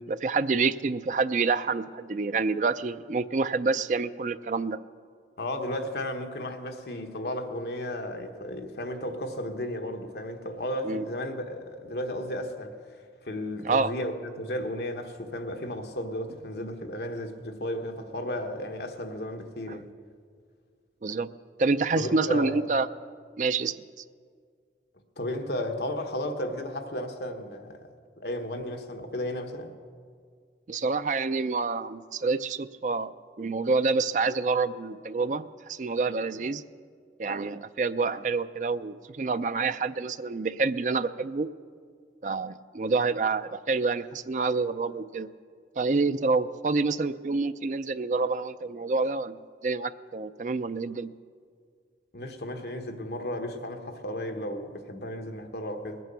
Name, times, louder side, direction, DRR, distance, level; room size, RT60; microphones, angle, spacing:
voice 1, 0.0-4.8 10.8-11.0 13.6-13.9 19.7-19.8 21.0-21.3 21.6-22.9 23.4-23.8 30.7-33.1 33.4-36.6 37.2-41.5 42.2-45.3 45.8-49.4 49.6-51.1, right 4 dB, 45° right, 0.4 m, -27 dB
voice 2, 5.4-19.9 21.9-22.6 25.2-27.8 28.2-29.7 52.1-56.0, left 1 dB, 65° left, 1.3 m, -34 dB
20.0 x 9.3 x 6.9 m
head